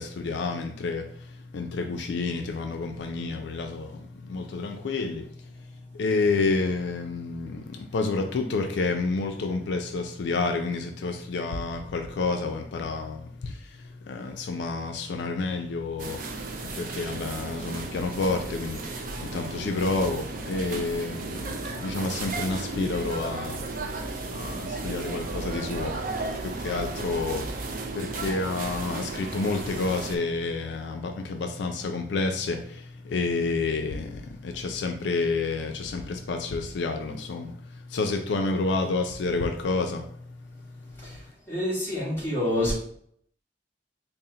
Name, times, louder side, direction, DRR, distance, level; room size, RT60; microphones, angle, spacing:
voice 1, 0.0-41.2, left 3 dB, 75° left, 5 dB, 0.4 m, -30 dB
sound 1, 16.0-30.2, right 3 dB, 45° right, 0.4 m, -34 dB
voice 2, 40.9-42.7, left 1 dB, 15° left, -7 dB, 1.3 m, -28 dB
4.1 x 2.0 x 3.7 m, 0.66 s
head